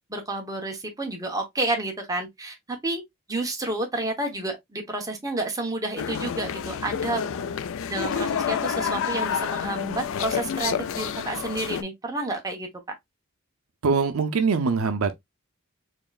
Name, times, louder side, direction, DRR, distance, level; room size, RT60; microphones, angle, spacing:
voice 1, 0.1-3.0 3.3-7.2 7.9-12.7, right 2 dB, 15° right, 1.1 m, -30 dB
sound 1, 6.0-11.8, left 7 dB, 65° left, 0.4 m, -29 dB
voice 2, 13.8-15.1, right 5 dB, 75° right, 0.6 m, -23 dB
4.6 x 2.9 x 2.4 m
head